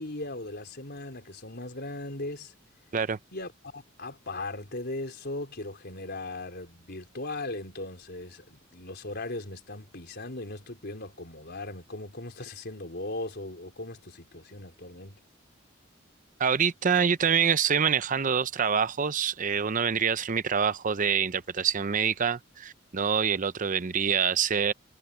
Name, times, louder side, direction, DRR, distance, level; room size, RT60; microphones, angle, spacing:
voice 1, 0.0-2.5 3.3-15.2, left 2 dB, 55° left, 4.3 m, -38 dB
voice 2, 16.4-24.7, right 7 dB, 40° right, 0.6 m, -26 dB
head